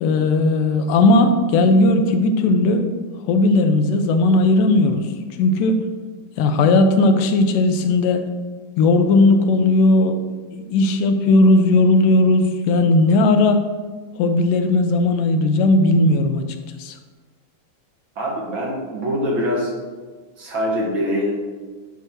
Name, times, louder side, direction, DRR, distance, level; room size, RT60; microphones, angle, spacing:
voice 1, 0.0-2.9 3.3-5.1 5.4-5.9 6.4-8.2 8.8-10.2 10.5-13.7 14.2-16.5 16.8-17.0, left 2 dB, 85° left, 6 dB, 2.3 m, -16 dB
voice 2, 18.1-19.7 20.4-21.3, equal, 50° right, -3 dB, 1.7 m, -23 dB
9.8 x 3.6 x 6.0 m, 1.4 s
omnidirectional pair, 3.7 m